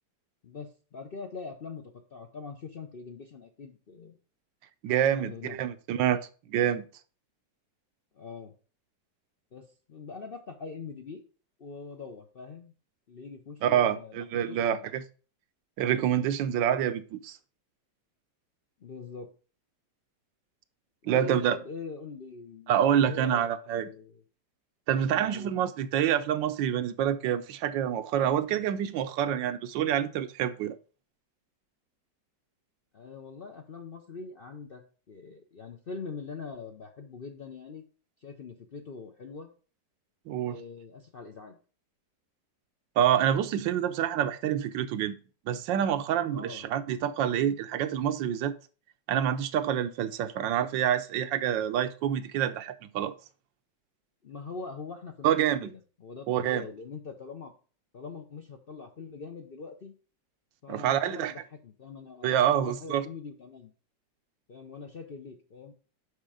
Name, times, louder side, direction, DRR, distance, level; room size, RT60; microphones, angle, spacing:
voice 1, 0.4-4.2 5.0-5.6 8.1-8.5 9.5-11.2 11.6-12.7 13.1-14.9 18.8-19.3 21.0-24.2 25.0-25.5 32.9-37.8 38.2-39.5 40.5-41.6 46.3-46.7 54.2-57.5 57.9-59.9 60.6-63.7 64.5-65.7, left 4 dB, 55° left, 0.6 m, -43 dB
voice 2, 4.8-6.9 13.6-15.0 15.8-17.4 21.0-21.6 22.7-23.9 24.9-30.8 40.3-40.6 43.0-45.2 45.5-48.5 49.1-53.1 55.2-55.7 56.3-56.6 60.7-61.3 62.2-63.0, right 10 dB, 90° right, 1.4 m, -27 dB
6.6 x 5.6 x 4.9 m
omnidirectional pair, 1.9 m